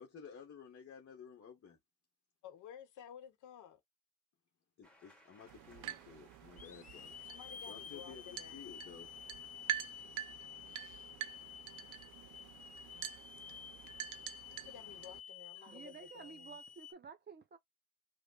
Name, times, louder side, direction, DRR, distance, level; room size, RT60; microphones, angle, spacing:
voice 1, 0.0-1.8 4.8-7.2 7.7-9.1 9.4-9.5, left 7 dB, 50° left, 1.0 m, -53 dB
voice 2, 2.4-3.8 7.2-8.6 14.5-16.5, left 9 dB, 80° left, 0.9 m, -54 dB
sound 1, 4.8-11.5, left 1 dB, 5° left, 1.5 m, -69 dB
Hiss / Alarm, 5.5-5.6 6.6-16.9, left 8 dB, 30° left, 0.4 m, -52 dB
sound 2, 5.5-15.2, right 13 dB, 85° right, 0.5 m, -46 dB
voice 3, 15.6-17.6, right 5 dB, 35° right, 0.7 m, -52 dB
5.0 x 2.1 x 2.3 m
cardioid pair, 90°, 30 cm